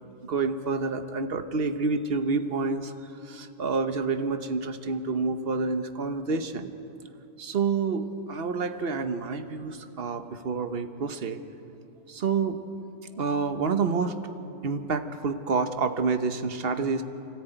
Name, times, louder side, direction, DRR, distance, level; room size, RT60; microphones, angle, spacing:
voice 1, 0.2-2.9 3.2-6.7 7.4-11.4 12.1-12.6 13.2-14.3 14.6-17.0, right 4 dB, 55° right, 9 dB, 1.2 m, -28 dB
24.0 x 14.0 x 9.1 m, 2.9 s
omnidirectional pair, 1.2 m